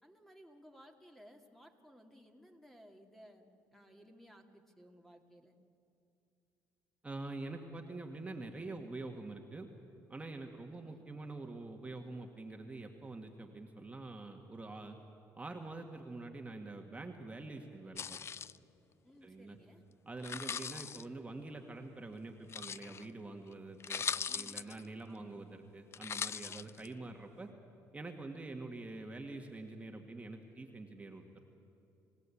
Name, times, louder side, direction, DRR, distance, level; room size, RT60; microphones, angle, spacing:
voice 1, 0.0-5.5 10.4-11.0 19.0-19.8 20.2-20.4 24.3-25.4 26.5-27.1, equal, 5° left, 4 dB, 2.3 m, -59 dB
voice 2, 7.0-9.7 10.1-15.0 15.3-18.2 19.2-19.6 20.1-24.1 24.3-27.5 27.9-31.4, right 2 dB, 20° right, 3 dB, 1.9 m, -46 dB
sound 1, 18.0-18.6 20.2-21.0 22.5-23.0 23.5-23.6 23.8-24.8 25.9-26.9, left 7 dB, 40° left, 0.5 m, -40 dB
29.0 x 16.5 x 8.6 m, 2.8 s
cardioid pair, 85°, 7 cm